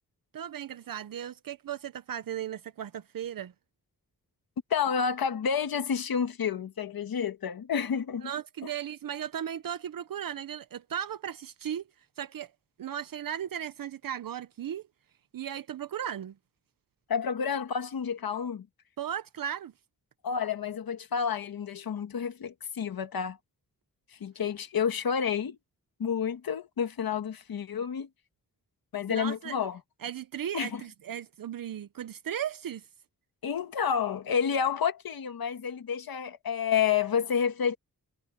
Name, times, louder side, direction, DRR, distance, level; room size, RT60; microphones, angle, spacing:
voice 1, 0.3-3.5 8.2-11.8 12.2-12.5 12.8-14.8 15.3-16.3 19.0-19.7 29.1-29.6 30.0-32.9, right 9 dB, 75° right, 0.7 m, -36 dB
voice 2, 4.7-8.3 17.1-18.6 20.2-23.4 24.2-25.6 26.0-28.1 28.9-29.8 30.5-30.8 33.4-37.8, left 7 dB, 90° left, 1.4 m, -29 dB
wide cardioid pair, 140°, 35 cm